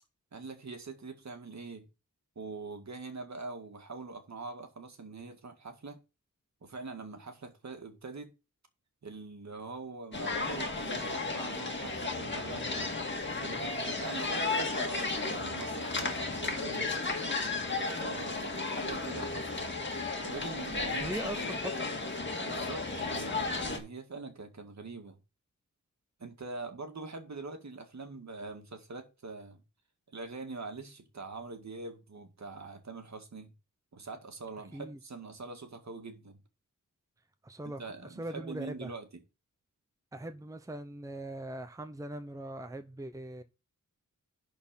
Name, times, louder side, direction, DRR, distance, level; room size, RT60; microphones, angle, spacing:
voice 1, 0.3-1.9 2.4-6.0 6.6-8.3 9.0-12.9 13.4-16.9 17.9-19.7 20.2-21.5 22.4-25.2 26.2-29.6 30.1-33.5 33.9-36.4 37.6-39.2, right 3 dB, 55° right, 2.0 m, -43 dB
sound 1, 10.1-23.8, left 3 dB, 35° left, 2.1 m, -34 dB
voice 2, 21.0-21.9 34.7-35.0 37.4-37.8 38.2-38.9 40.1-43.4, right 1 dB, 10° right, 0.8 m, -40 dB
11.0 x 4.3 x 5.7 m
wide cardioid pair, 120°, 32 cm